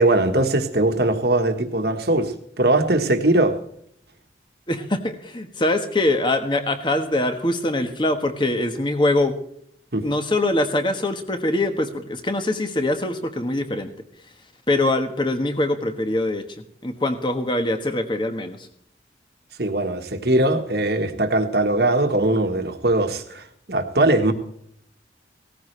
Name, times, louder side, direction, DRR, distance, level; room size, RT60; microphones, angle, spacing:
voice 1, 0.0-3.5 9.9-10.0 19.6-24.3, right 2 dB, 55° right, 6 dB, 1.4 m, -20 dB
voice 2, 4.7-9.4 10.0-13.9 14.7-16.4 16.8-18.6, left 1 dB, 25° left, 7 dB, 1.3 m, -23 dB
17.5 x 14.5 x 3.3 m, 0.71 s
head